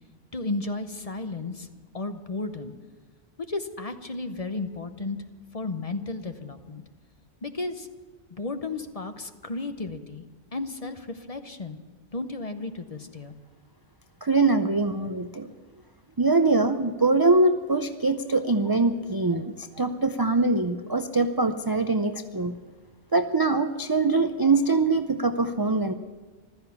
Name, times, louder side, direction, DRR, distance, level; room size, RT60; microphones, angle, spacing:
voice 1, 0.3-1.7 1.9-2.7 3.5-5.2 5.5-6.8 7.4-7.9 8.3-10.2 10.5-11.8 12.1-13.3, left 3 dB, 35° left, 8 dB, 0.8 m, -33 dB
voice 2, 14.2-15.5 16.2-22.5 23.1-25.9, right 3 dB, 35° right, 8 dB, 0.3 m, -23 dB
15.0 x 13.0 x 7.0 m, 1.4 s
omnidirectional pair, 1.2 m